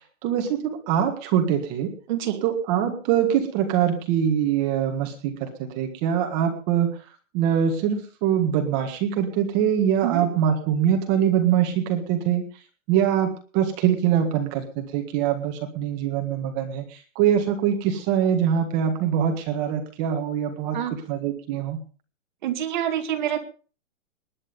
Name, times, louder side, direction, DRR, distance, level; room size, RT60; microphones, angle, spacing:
voice 1, 0.2-1.9 2.4-7.0 7.3-12.4 12.9-21.8, right 9 dB, 20° right, 5 dB, 1.8 m, -23 dB
voice 2, 2.1-2.4 10.0-10.2 20.7-20.9 22.4-23.4, right 11 dB, 35° right, 5 dB, 2.2 m, -26 dB
20.0 x 10.0 x 5.5 m, 0.38 s
hypercardioid pair, 175°, 38 cm